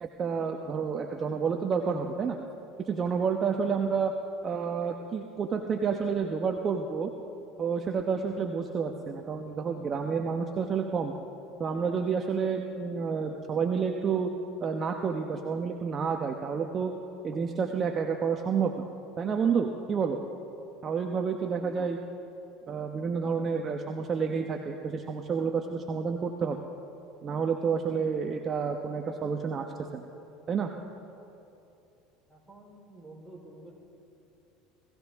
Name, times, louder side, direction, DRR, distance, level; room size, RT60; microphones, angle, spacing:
voice 1, 0.0-2.4 2.8-4.1 4.4-7.1 7.6-11.1 11.6-14.3 14.6-16.9 17.2-18.8 19.2-20.2 20.8-22.0 22.7-26.6 27.2-29.7 29.9-30.0 30.5-30.7, right 6 dB, 35° right, 3 dB, 0.9 m, -29 dB
voice 2, 32.3-33.8, right 2 dB, 10° right, -2 dB, 4.0 m, -49 dB
24.5 x 15.5 x 3.6 m, 2.8 s
supercardioid pair, 95°, 0 cm